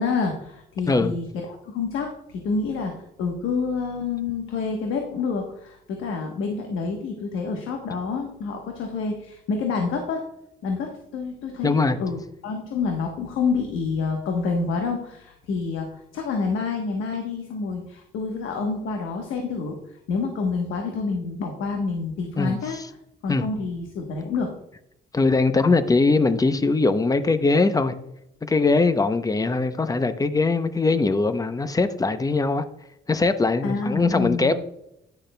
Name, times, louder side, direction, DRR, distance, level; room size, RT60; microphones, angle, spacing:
voice 1, 0.0-10.2 10.6-19.8 20.1-23.0 23.2-24.5 33.6-34.5, left 4 dB, 85° left, 1.1 m, -28 dB
voice 2, 11.6-12.0 22.4-22.8 23.3-23.4 25.1-27.9 28.4-32.6 33.1-34.5, left 3 dB, 20° left, 0.6 m, -21 dB
9.9 x 6.3 x 2.2 m
cardioid pair, 90°, 20 cm